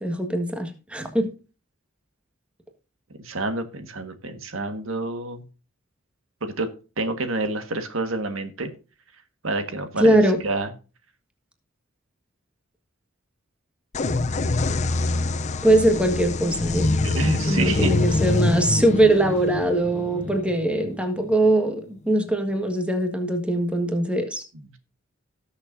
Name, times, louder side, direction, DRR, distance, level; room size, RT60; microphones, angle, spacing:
voice 1, 0.0-1.3 10.0-10.4 15.6-16.9 17.5-24.4, right 1 dB, 5° right, 5 dB, 1.6 m, -21 dB
voice 2, 3.2-5.4 6.4-6.7 7.0-8.7 9.4-10.7 17.0-17.9 24.5-24.8, right 2 dB, 80° right, 7 dB, 1.6 m, -28 dB
sound 1, 13.9-21.5, left 2 dB, 35° left, 0.5 m, -25 dB
18.5 x 6.7 x 2.7 m, 0.33 s
head